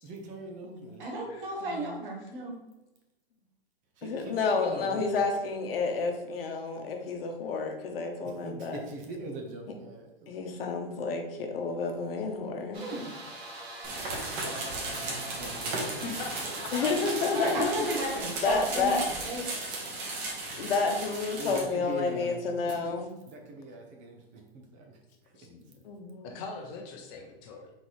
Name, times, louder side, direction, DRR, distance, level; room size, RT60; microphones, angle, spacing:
voice 1, 0.0-1.1 4.0-5.1 8.2-10.6 14.9-15.0 15.3-16.6 17.5-18.2 21.3-22.4 22.6-22.9 23.3-25.0 25.2-25.3, right 2 dB, 25° right, 1 dB, 0.7 m, -42 dB
voice 2, 1.0-2.5 12.8-13.1 17.3-19.6, right 1 dB, 60° right, -1 dB, 1.5 m, -34 dB
voice 3, 1.6-2.1 4.0-8.8 10.3-12.9 16.7-18.0 18.4-19.0 20.6-23.1 25.8-26.4, left 4 dB, 65° left, 3 dB, 1.0 m, -30 dB
sound 1, 12.7-18.2, right 2 dB, 85° right, 1.3 m, -43 dB
sound 2, 13.8-21.6, right 2 dB, 40° right, 1.3 m, -36 dB
voice 4, 16.0-16.9 17.6-17.9 25.4-25.8 26.2-27.7, left 4 dB, 35° left, 3 dB, 0.7 m, -41 dB
4.1 x 3.9 x 3.1 m, 1.0 s
hypercardioid pair, 135°, 30 cm